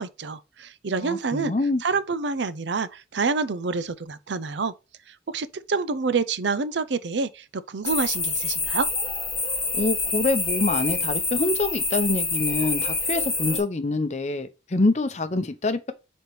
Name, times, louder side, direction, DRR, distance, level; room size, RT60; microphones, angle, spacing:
voice 1, 0.0-1.5 1.8-4.7 5.3-8.9, right 4 dB, 80° right, 0.6 m, -27 dB
voice 2, 1.0-1.8 9.7-15.9, left 2 dB, 40° left, 0.7 m, -25 dB
sound 1, 7.8-13.6, left 3 dB, 15° left, 2.4 m, -27 dB
5.1 x 4.3 x 4.4 m
head